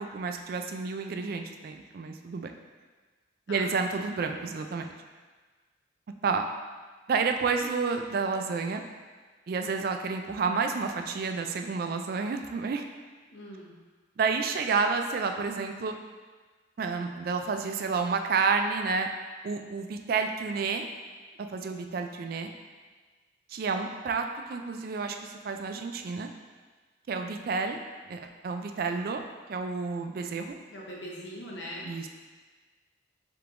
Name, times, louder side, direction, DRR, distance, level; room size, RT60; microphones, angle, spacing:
voice 1, 0.0-2.5 3.5-4.9 6.2-6.4 7.1-8.8 9.5-12.8 14.2-16.0 16.8-19.1 19.4-20.8 21.4-22.5 23.5-26.3 27.1-27.8 28.1-29.2 29.5-30.6 31.9-32.1, right 4 dB, 55° right, 5 dB, 0.3 m, -30 dB
voice 2, 13.3-13.7 30.7-31.9, equal, 70° left, -3 dB, 1.0 m, -41 dB
5.6 x 3.7 x 2.5 m, 1.4 s
head